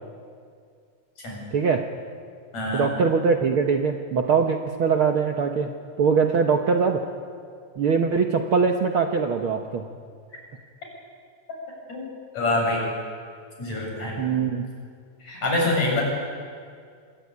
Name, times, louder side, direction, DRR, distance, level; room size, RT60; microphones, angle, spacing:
voice 1, 1.5-1.8 2.7-5.7 6.0-7.0 7.8-9.9 14.2-14.7, right 5 dB, 55° right, 4 dB, 1.6 m, -22 dB
voice 2, 2.5-2.9 11.9-12.1 12.3-12.8 13.6-14.2 15.2-16.0, left 2 dB, 60° left, -1 dB, 9.1 m, -25 dB
27.0 x 20.0 x 9.6 m, 2.2 s
omnidirectional pair, 3.5 m